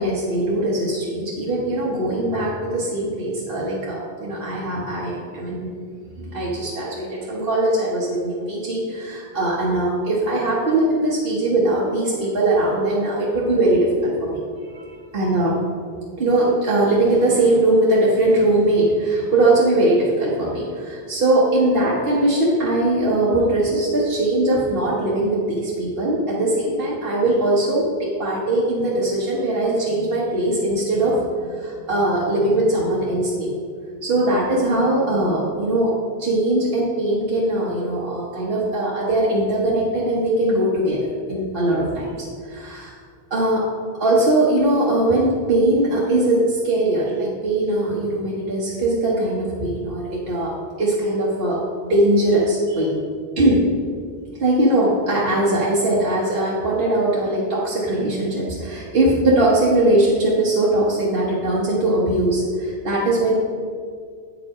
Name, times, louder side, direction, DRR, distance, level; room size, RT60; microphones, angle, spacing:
voice 1, 0.0-5.7 6.2-15.6 16.2-33.5 34.0-35.9 36.2-42.2 42.4-42.9 43.3-43.7 44.0-50.5 50.8-53.0 53.4-53.7 54.4-63.3, right 1 dB, 60° right, -6 dB, 1.4 m, -20 dB
8.9 x 5.1 x 4.8 m, 2.1 s
omnidirectional pair, 1.1 m